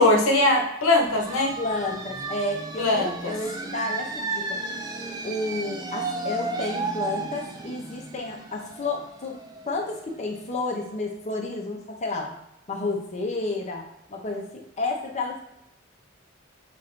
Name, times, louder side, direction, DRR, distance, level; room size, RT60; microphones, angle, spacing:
voice 1, 0.0-1.5 2.8-3.3, left 2 dB, 80° left, 1 dB, 0.9 m, -20 dB
sound 1, 1.0-10.5, right 3 dB, 20° right, 0.4 m, -34 dB
voice 2, 1.6-4.6 5.2-9.4 9.7-12.3 12.7-15.4, left 2 dB, 35° left, 1 dB, 0.7 m, -31 dB
5.4 x 2.5 x 3.3 m, 0.84 s
head